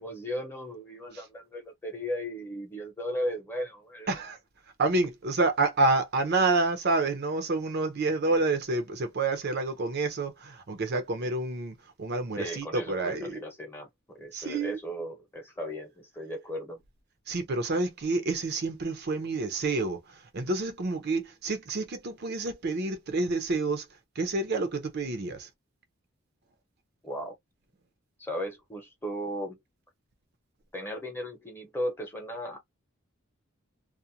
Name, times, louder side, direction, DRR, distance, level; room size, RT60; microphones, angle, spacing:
voice 1, 0.0-4.1 12.3-16.8 27.0-27.3 28.2-29.6 30.7-32.6, equal, 10° left, 0.8 m, -36 dB
voice 2, 4.1-4.4 4.8-13.4 14.3-14.8 17.3-23.9 24.2-25.5, right 3 dB, 50° right, 0.6 m, -28 dB
2.4 x 2.1 x 2.7 m
head